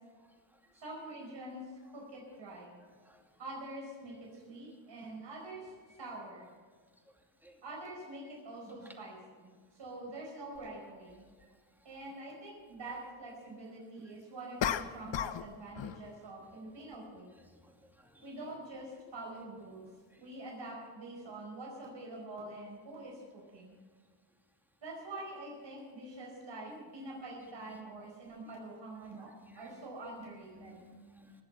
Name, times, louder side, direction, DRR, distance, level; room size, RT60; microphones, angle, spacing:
voice 1, 0.8-1.6 1.9-2.8 3.4-6.5 7.6-11.2 11.8-17.3 18.2-19.9 20.2-23.7 24.8-30.8, right 2 dB, 65° right, -3 dB, 5.0 m, -45 dB
sound 1, 10.5-10.7 14.6-15.5 15.7-16.1, left 9 dB, 70° left, 0.8 m, -34 dB
voice 2, 17.5-18.3 20.1-20.2 26.7-26.8 29.4-29.6 30.5-31.4, right 1 dB, 5° right, 1 dB, 2.5 m, -57 dB
19.5 x 8.1 x 7.0 m, 1.5 s
cardioid pair, 85°, 46 cm